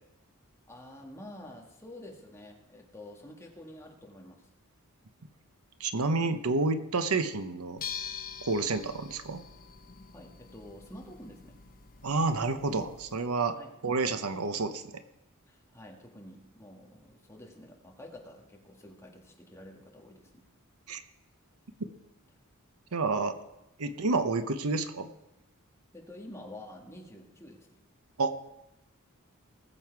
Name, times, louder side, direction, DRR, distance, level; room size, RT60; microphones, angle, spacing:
voice 1, 0.7-4.5 10.1-11.6 13.5-13.7 15.5-20.4 25.9-27.8, left 1 dB, 15° left, 0 dB, 1.9 m, -48 dB
voice 2, 5.8-7.8 8.4-9.4 12.0-13.6 13.8-14.8 20.9-21.0 22.9-23.4 23.8-25.1 28.2-28.4, right 3 dB, 85° right, 10 dB, 0.9 m, -29 dB
sound 1, 7.8-13.2, left 7 dB, 40° left, 0.9 m, -44 dB
19.5 x 7.7 x 4.7 m, 0.92 s
head